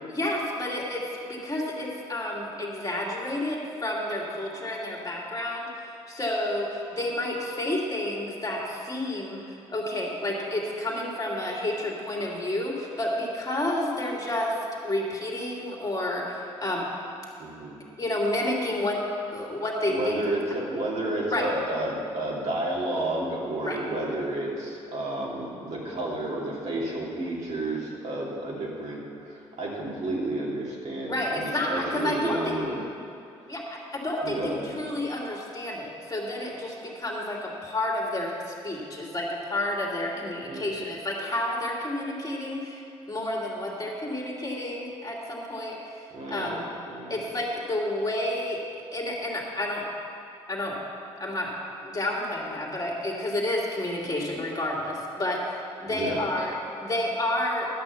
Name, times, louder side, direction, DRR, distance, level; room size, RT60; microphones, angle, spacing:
voice 1, 0.1-1.0 1.3-16.9 18.0-19.0 19.3-20.2 21.3-21.4 23.6-23.8 31.1-32.6 33.4-42.8 43.1-45.8 46.3-46.7 47.1-48.6 48.9-49.8 50.5-50.7 51.2-51.5 51.8-55.4 55.8-56.6 56.8-57.7, left 1 dB, 30° left, -3 dB, 2.7 m, -30 dB
voice 2, 17.4-17.8 19.9-32.8 34.2-34.8 40.4-40.7 46.1-46.5 46.9-47.2 55.8-56.2, right 1 dB, 55° right, -4 dB, 2.8 m, -31 dB
11.0 x 6.1 x 7.1 m, 2.6 s
hypercardioid pair, 50°, 13 cm